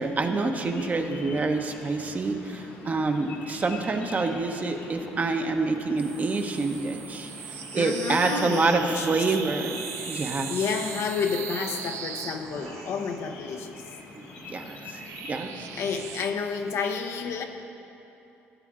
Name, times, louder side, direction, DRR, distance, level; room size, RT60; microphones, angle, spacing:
voice 1, 0.0-9.8 10.1-10.6 14.1-15.0 15.3-15.5, right 3 dB, 35° right, 5 dB, 0.9 m, -27 dB
sound 1, 0.6-16.1, left 2 dB, 90° left, 1.5 m, -45 dB
sound 2, 6.0-13.3 14.2-16.3, right 8 dB, 75° right, 0.5 m, -39 dB
voice 2, 7.7-9.4 10.5-13.8 15.5-17.4, left 5 dB, 70° left, 5 dB, 0.8 m, -30 dB
14.5 x 8.3 x 3.7 m, 2.8 s
supercardioid pair, 80°, 5 cm